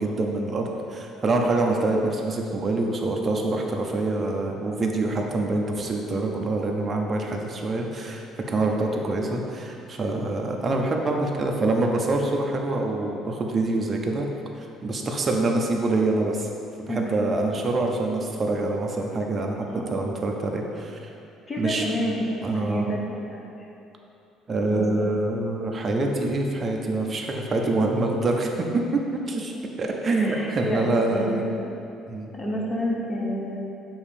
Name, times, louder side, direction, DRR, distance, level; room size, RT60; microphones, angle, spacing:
voice 1, 0.0-14.3 14.6-16.5 16.9-21.1 21.6-21.9 22.4-22.9 24.5-31.4 32.1-32.3, right 2 dB, 25° right, 1 dB, 0.5 m, -25 dB
voice 2, 21.5-23.0 23.3-23.4 24.7-25.1 30.0-30.8 31.1-31.7 32.3-33.6, equal, 25° left, -2 dB, 0.7 m, -29 dB
7.1 x 2.7 x 4.9 m, 2.8 s
cardioid pair, 165°, 0 cm